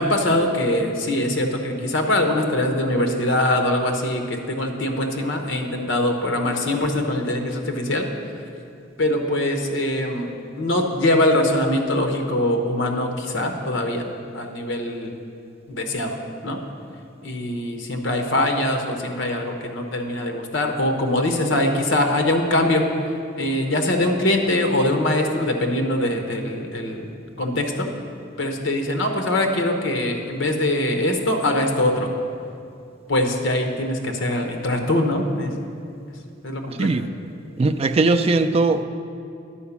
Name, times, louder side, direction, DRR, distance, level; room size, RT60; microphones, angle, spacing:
voice 1, 0.0-8.1 9.0-14.1 14.3-15.1 15.7-16.2 16.4-16.6 17.2-22.8 23.4-27.1 27.4-27.9 28.4-32.1 33.1-35.5 36.4-36.9, left 1 dB, 70° left, 4 dB, 1.0 m, -22 dB
voice 2, 37.6-38.8, right 3 dB, 30° right, 9 dB, 0.3 m, -19 dB
10.0 x 4.9 x 7.0 m, 2.6 s
head